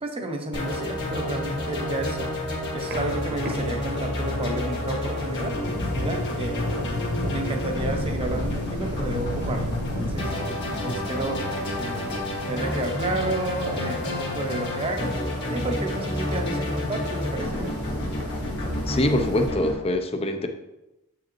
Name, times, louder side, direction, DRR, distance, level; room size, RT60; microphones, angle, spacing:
voice 1, 0.0-2.3 2.7-5.6 5.9-6.7 7.3-10.4 10.8-11.5 11.7-12.1 12.4-15.2 15.5-17.6, right 2 dB, 25° right, 4 dB, 0.7 m, -31 dB
sound 1, 0.5-19.7, left 1 dB, 55° left, 1.8 m, -30 dB
sound 2, 2.8-18.4, equal, 50° right, 1.0 m, -43 dB
sound 3, 5.6-19.5, left 1 dB, 85° left, 1.3 m, -36 dB
voice 2, 18.8-20.5, left 1 dB, 25° left, 7 dB, 0.5 m, -24 dB
7.3 x 4.8 x 3.1 m, 0.95 s
head